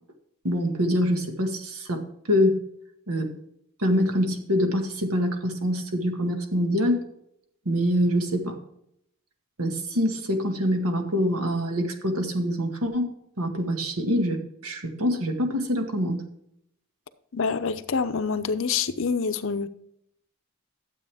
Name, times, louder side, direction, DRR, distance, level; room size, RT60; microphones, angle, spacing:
voice 1, 0.4-2.6 3.1-3.3 3.8-7.0 7.7-8.6 9.6-16.2, equal, 85° right, 4 dB, 1.9 m, -25 dB
voice 2, 17.3-19.7, left 5 dB, 60° left, 11 dB, 0.7 m, -26 dB
12.0 x 8.0 x 3.5 m, 0.74 s
head